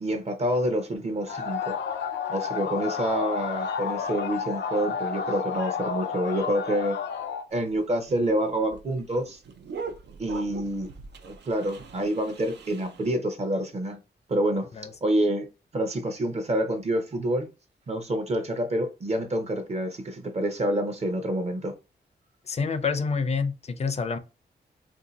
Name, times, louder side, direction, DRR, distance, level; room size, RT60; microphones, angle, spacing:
voice 1, 0.0-1.7 2.3-7.0 7.5-9.4 10.2-10.9 11.2-14.0 14.3-14.7 15.0-15.5 15.7-17.5 17.9-21.7, right 1 dB, 35° right, 0.7 m, -27 dB
sound 1, 1.3-7.5, left 6 dB, 85° left, 0.6 m, -31 dB
sound 2, 7.5-13.1, right 4 dB, 80° right, 0.6 m, -42 dB
voice 2, 22.5-24.2, left 5 dB, 35° left, 0.5 m, -27 dB
2.7 x 2.6 x 3.9 m
wide cardioid pair, 130°, 18 cm